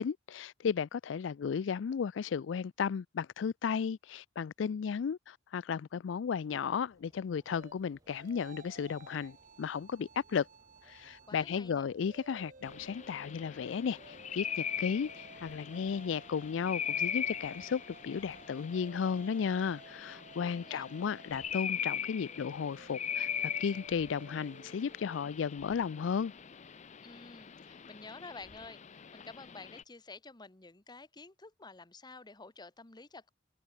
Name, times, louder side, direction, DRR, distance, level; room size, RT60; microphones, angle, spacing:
voice 1, 0.0-10.5 10.8-26.3, left 6 dB, 90° left, 0.4 m, -34 dB
sound 1, 6.5-18.4, right 1 dB, 20° right, 4.9 m, -67 dB
sound 2, 7.5-11.5 11.9-25.5, right 3 dB, 45° right, 2.8 m, -55 dB
voice 2, 11.3-11.9 20.4-20.9 27.0-33.3, left 3 dB, 25° left, 1.1 m, -50 dB
sound 3, 12.6-29.8, left 8 dB, 40° left, 0.5 m, -41 dB
head